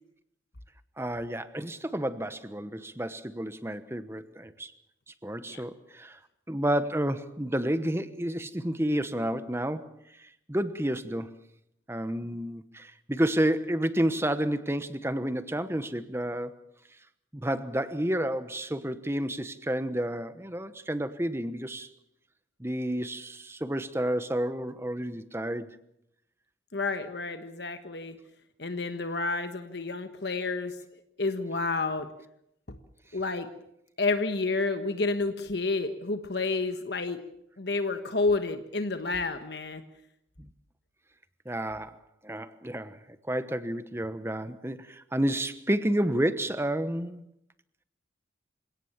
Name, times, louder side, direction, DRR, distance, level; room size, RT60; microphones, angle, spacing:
voice 1, 1.0-4.7 5.2-6.2 6.5-9.9 10.5-11.4 11.9-16.5 17.3-21.9 22.6-25.8 40.4-40.5 41.4-42.0 42.2-43.0 43.3-47.2, right 1 dB, 15° right, 12 dB, 1.1 m, -30 dB
voice 2, 26.7-28.2 28.6-30.7 31.2-32.1 33.1-33.5 34.0-37.2 37.6-39.8, left 3 dB, 60° left, 8 dB, 1.4 m, -30 dB
27.5 x 17.5 x 7.3 m, 0.78 s
head